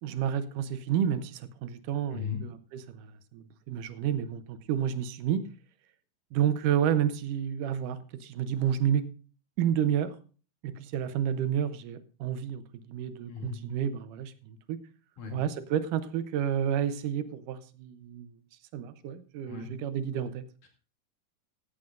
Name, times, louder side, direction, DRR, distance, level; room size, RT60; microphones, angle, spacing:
voice 1, 0.0-5.4 6.3-9.1 9.6-10.2 10.6-14.8 15.3-18.4 18.7-20.4, right 9 dB, 80° right, 12 dB, 2.2 m, -30 dB
voice 2, 2.1-2.4 13.3-13.6 15.2-15.4 19.5-19.7 20.6-20.7, left 6 dB, 65° left, 1 dB, 3.9 m, -37 dB
16.5 x 11.5 x 2.4 m, 0.37 s
omnidirectional pair, 3.9 m